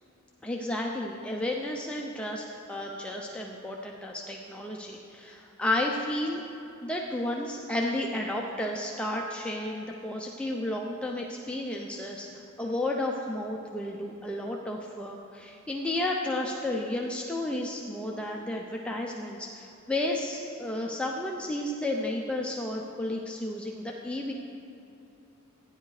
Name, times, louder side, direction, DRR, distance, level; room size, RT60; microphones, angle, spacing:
voice 1, 0.4-6.4 6.8-24.3, left 1 dB, 5° left, -1 dB, 0.5 m, -32 dB
15.5 x 10.0 x 3.2 m, 2.8 s
head